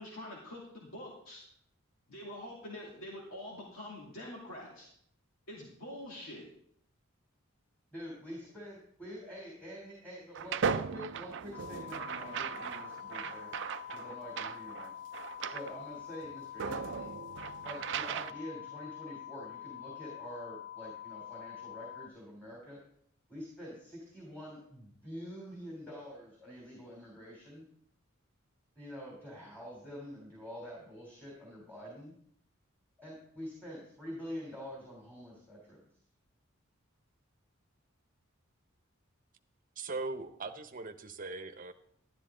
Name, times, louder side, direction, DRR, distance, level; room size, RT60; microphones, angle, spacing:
voice 1, 0.0-1.4 2.1-4.9 5.5-6.5, left 1 dB, 85° left, -3 dB, 2.6 m, -45 dB
voice 2, 7.9-13.5 13.9-14.9 15.5-17.1 17.6-22.8 23.3-27.6 28.7-32.1 33.0-35.9, equal, 10° left, -4 dB, 3.4 m, -46 dB
sound 1, 10.3-15.7 16.2-16.3 16.6-18.3, right 6 dB, 60° right, 0.5 m, -37 dB
sound 2, 11.5-22.1, left 11 dB, 65° left, 0.6 m, -46 dB
voice 3, 39.8-41.7, right 3 dB, 40° right, 8 dB, 0.9 m, -40 dB
12.5 x 11.0 x 3.8 m, 0.68 s
head